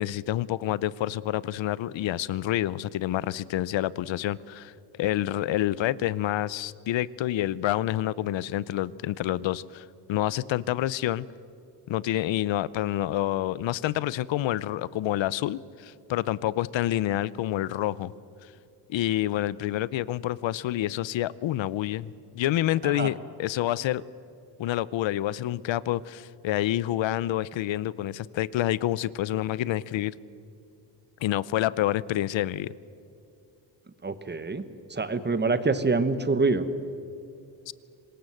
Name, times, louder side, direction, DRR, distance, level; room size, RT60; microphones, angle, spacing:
voice 1, 0.0-11.2 11.9-18.1 18.9-24.0 24.6-30.1 31.2-32.7 37.7-37.8, left 13 dB, 75° left, 20 dB, 0.8 m, -28 dB
voice 2, 34.0-34.6 34.9-36.7, right 3 dB, 25° right, 12 dB, 1.3 m, -25 dB
25.5 x 20.0 x 7.9 m, 2.6 s
cardioid pair, 120°, 46 cm